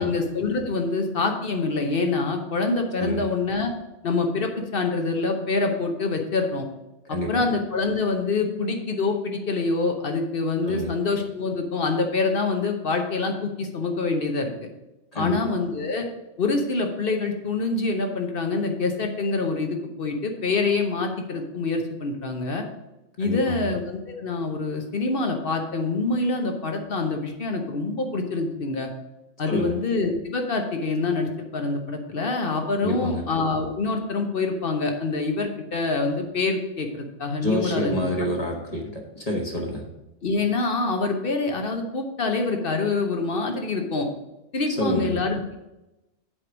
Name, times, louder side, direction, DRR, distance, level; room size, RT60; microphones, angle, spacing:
voice 1, 0.0-3.7 4.0-6.7 7.1-14.5 15.1-16.1 16.4-22.6 23.2-28.9 29.4-38.3 40.2-44.1 44.5-45.4, left 3 dB, 55° left, 4 dB, 1.1 m, -26 dB
voice 2, 7.1-7.5 10.6-10.9 15.1-15.6 23.2-23.7 29.5-29.7 32.8-33.2 37.4-39.9 44.7-45.1, left 1 dB, 35° left, 0 dB, 1.3 m, -28 dB
7.7 x 4.8 x 6.1 m, 0.97 s
omnidirectional pair, 1.2 m